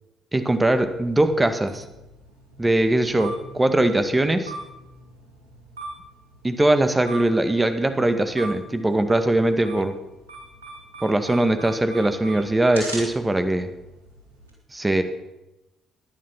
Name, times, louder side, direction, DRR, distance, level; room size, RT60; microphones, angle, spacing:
voice 1, 0.3-1.8 2.6-4.5 6.4-9.9 11.0-13.7 14.7-15.0, right 1 dB, 15° right, 9 dB, 2.0 m, -21 dB
sound 1, 0.6-14.5, right 2 dB, 80° right, 5.1 m, -41 dB
18.5 x 11.5 x 6.1 m, 0.97 s
figure-of-eight pair, 45°, 0 cm